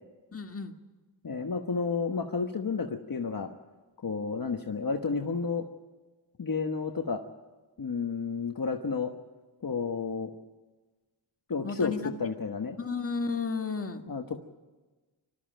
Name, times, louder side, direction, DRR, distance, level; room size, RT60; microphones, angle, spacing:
voice 1, 0.3-0.7 11.6-12.1 12.8-14.1, left 4 dB, 30° left, 4 dB, 1.7 m, -33 dB
voice 2, 1.2-3.5 4.0-5.7 6.4-7.2 7.8-9.1 9.6-10.3 11.5-11.9 12.2-12.8 14.1-14.4, left 5 dB, 45° left, 3 dB, 1.3 m, -31 dB
25.0 x 13.5 x 9.1 m, 1.2 s
wide cardioid pair, 100°, 49 cm